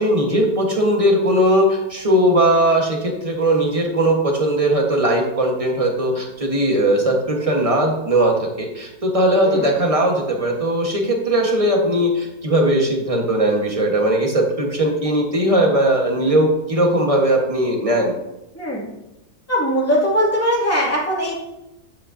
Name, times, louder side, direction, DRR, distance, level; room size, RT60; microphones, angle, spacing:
voice 1, 0.0-18.1, right 1 dB, 20° right, 1 dB, 1.3 m, -19 dB
voice 2, 18.5-18.9 19.5-21.3, equal, 10° left, -6 dB, 2.5 m, -20 dB
8.9 x 8.5 x 2.7 m, 0.90 s
omnidirectional pair, 1.8 m